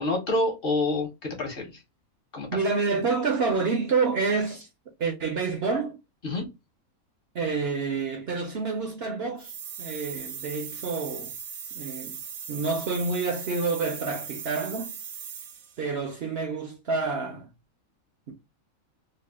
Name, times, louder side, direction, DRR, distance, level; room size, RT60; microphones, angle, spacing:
voice 1, 0.0-1.7 2.3-2.5 6.2-6.5, left 2 dB, 45° left, 1.0 m, -27 dB
voice 2, 2.5-4.7 5.0-6.0 7.3-9.5 9.8-11.3 11.7-12.2 12.5-15.0 15.8-17.5, right 4 dB, 60° right, 0.7 m, -28 dB
sound 1, 9.4-15.8, right 7 dB, 75° right, 1.2 m, -39 dB
2.7 x 2.3 x 3.4 m
omnidirectional pair, 1.5 m